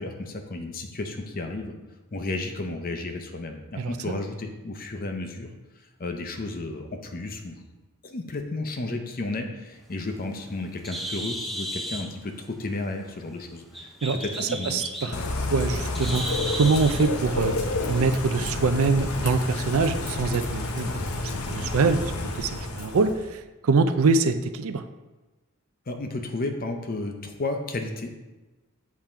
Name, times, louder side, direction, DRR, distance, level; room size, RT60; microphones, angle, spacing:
voice 1, 0.0-1.7 2.1-5.5 6.0-7.6 8.0-13.9 14.2-15.4 25.9-28.1, left 2 dB, 40° left, 5 dB, 0.7 m, -33 dB
voice 2, 3.8-4.1 14.0-15.2 15.5-17.5 17.9-24.8, right 4 dB, 75° right, 9 dB, 0.4 m, -24 dB
Bird, 9.8-17.1, equal, ahead, 0.4 m, -36 dB
Bird / Rain, 15.1-23.3, left 2 dB, 90° left, 0.7 m, -30 dB
7.4 x 3.7 x 4.3 m, 1.1 s
head